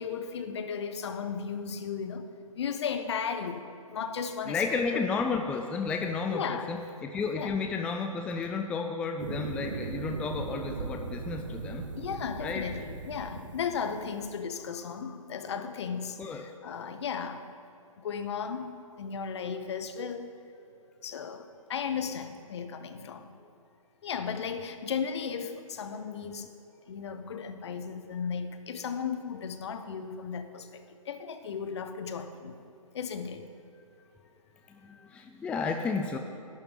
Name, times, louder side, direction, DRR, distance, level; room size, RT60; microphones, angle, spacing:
voice 1, 0.0-2.3 2.5-4.8 6.3-6.7 7.3-7.6 12.0-17.5 18.0-20.4 21.0-23.3 24.0-26.5 26.9-32.6 32.9-33.5, left 6 dB, 50° left, 1.1 m, -35 dB
voice 2, 4.4-11.8 12.4-12.6 16.2-16.5 23.4-23.5 34.7-36.2, left 4 dB, 5° left, 0.4 m, -32 dB
sound 1, 9.2-14.2, right 4 dB, 60° right, 1.1 m, -38 dB
11.5 x 6.8 x 9.5 m
figure-of-eight pair, 130°, 18 cm